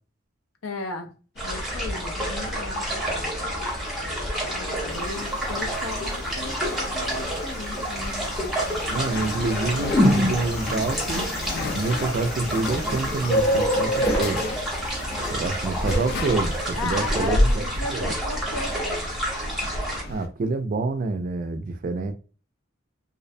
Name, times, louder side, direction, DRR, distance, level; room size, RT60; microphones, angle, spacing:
voice 1, 0.6-1.1 1.4-3.5 4.5-8.9 16.7-19.1, left 3 dB, 90° left, 0.6 m, -36 dB
sound 1, 1.4-20.3, left 2 dB, 50° left, 0.4 m, -32 dB
sound 2, 1.4-20.0, right 1 dB, ahead, 0.8 m, -30 dB
sound 3, 6.2-7.2 9.8-10.9 11.6-11.7 12.7-13.0 13.3-15.0 15.9-16.8, equal, 25° left, 0.8 m, -24 dB
voice 2, 8.9-11.3 11.7-14.4 15.3-18.1 20.1-22.1, right 3 dB, 40° right, 0.3 m, -27 dB
2.5 x 2.1 x 2.6 m
head